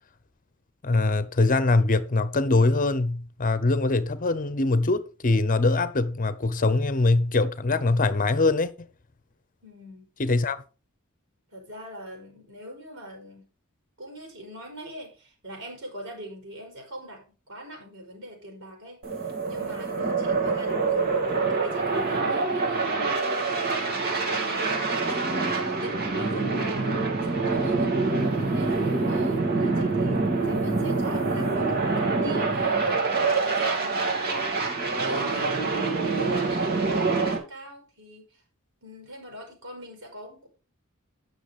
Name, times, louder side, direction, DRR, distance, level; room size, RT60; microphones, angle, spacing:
voice 1, 0.8-8.9 10.2-10.6, left 3 dB, 40° left, 0.8 m, -23 dB
voice 2, 9.6-10.1 11.5-13.5 14.0-23.0 23.4-32.8 33.3-34.6 34.9-38.4 38.8-40.5, equal, 70° right, 4.5 m, -42 dB
sound 1, 19.0-37.4, right 3 dB, 45° right, 2.3 m, -25 dB
9.1 x 6.4 x 4.9 m
head